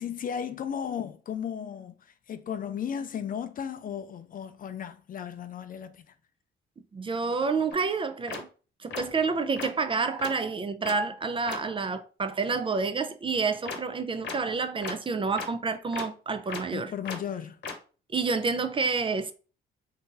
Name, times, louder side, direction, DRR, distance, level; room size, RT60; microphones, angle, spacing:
voice 1, 0.0-6.1 16.7-17.6, left 8 dB, 45° left, 0.4 m, -35 dB
voice 2, 6.9-8.5 8.8-16.9 18.1-19.3, right 4 dB, 25° right, 0.4 m, -29 dB
sound 1, 7.7-7.8 8.3-8.4 8.9-9.0 9.6-9.7 10.2-10.3 10.8-10.9 11.5-11.6 13.6-13.8 14.2-14.3 14.8-14.9 15.4-15.5 15.9-16.0 16.5-16.6 17.0-17.2 17.6-17.7, left 5 dB, 60° left, 0.9 m, -35 dB
2.7 x 2.5 x 3.7 m
cardioid pair, 90°, 20 cm